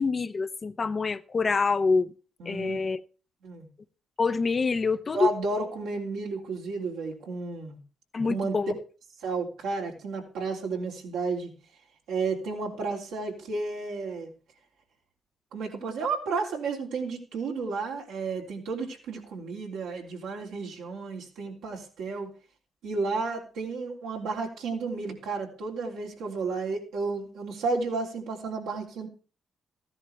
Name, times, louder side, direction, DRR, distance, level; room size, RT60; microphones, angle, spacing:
voice 1, 0.0-2.1 2.4-3.0 4.2-5.3 8.1-8.7, left 4 dB, 45° left, 0.9 m, -26 dB
voice 2, 2.4-2.8 3.4-3.7 5.1-7.8 8.3-8.6 9.2-11.5 12.1-14.3 15.5-22.3 22.8-29.1, right 4 dB, 75° right, 3.3 m, -32 dB
15.0 x 11.0 x 3.5 m
hypercardioid pair, 45°, 0 cm